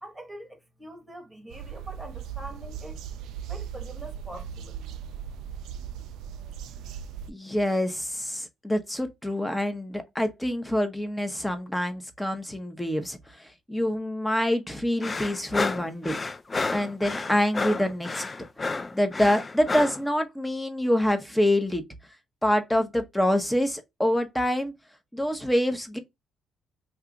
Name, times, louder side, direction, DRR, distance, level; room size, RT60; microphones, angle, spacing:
voice 1, 0.0-3.0 3.5-4.8, right 1 dB, 10° right, 1.1 m, -43 dB
sound 1, 1.5-7.3, right 8 dB, 85° right, 0.3 m, -38 dB
voice 2, 7.3-16.2 16.7-18.2 18.9-21.8 22.4-24.7 25.1-26.0, left 1 dB, 10° left, 0.8 m, -26 dB
sound 2, 15.0-20.0, left 3 dB, 30° left, 0.3 m, -31 dB
2.9 x 2.3 x 3.6 m
cardioid pair, 90°, 0 cm